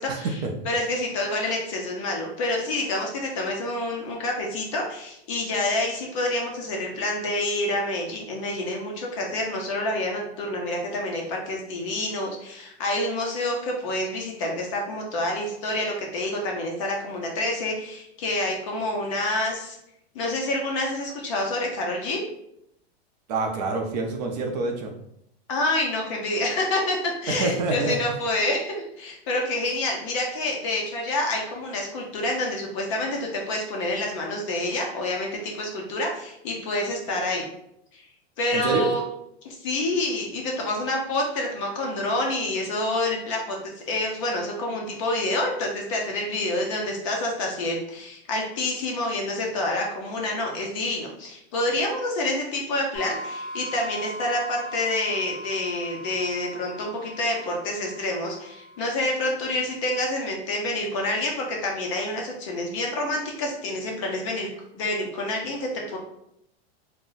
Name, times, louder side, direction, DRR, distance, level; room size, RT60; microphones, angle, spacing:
voice 1, 0.1-0.5 23.3-24.9 27.3-28.0 38.5-38.9, right 3 dB, 40° right, 2 dB, 0.4 m, -26 dB
voice 2, 0.6-19.8 20.1-22.2 25.5-37.5 37.9-38.1 38.4-39.0 39.4-64.5 64.7-66.0, left 1 dB, 30° left, 0 dB, 0.4 m, -28 dB
sound 1, 52.9-59.5, equal, 5° left, 1.3 m, -39 dB
2.5 x 2.0 x 3.7 m, 0.77 s
supercardioid pair, 165°, 32 cm